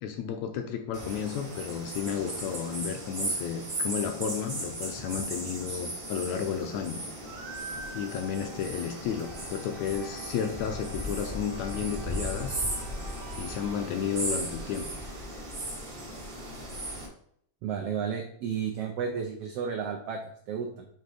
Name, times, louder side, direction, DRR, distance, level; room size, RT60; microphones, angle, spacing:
voice 1, 0.0-7.1 7.9-12.6 13.4-14.9, left 7 dB, 80° left, 5 dB, 1.8 m, -32 dB
sound 1, 0.9-17.1, right 1 dB, 55° right, 0.6 m, -36 dB
sound 2, 7.2-14.3, right 3 dB, 70° right, 2.4 m, -48 dB
Wind instrument woodwind instrument, 8.7-16.3, equal, 15° left, 0.6 m, -51 dB
voice 2, 17.6-20.9, right 7 dB, 90° right, 3 dB, 1.3 m, -33 dB
6.9 x 3.6 x 4.9 m, 0.66 s
omnidirectional pair, 3.6 m